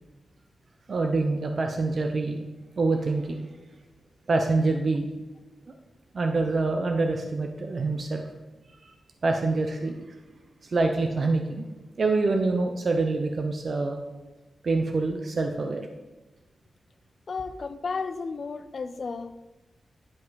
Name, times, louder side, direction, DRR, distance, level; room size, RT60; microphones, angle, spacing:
voice 1, 0.9-2.4 2.8-3.5 4.3-5.1 6.1-8.2 8.7-9.0 9.2-10.2 10.6-11.7 12.0-14.0 14.6-15.9, right 3 dB, 50° right, 0.6 m, -26 dB
voice 2, 17.3-19.4, left 4 dB, 50° left, 0.4 m, -33 dB
11.0 x 5.1 x 4.0 m
wide cardioid pair, 125°, 0 cm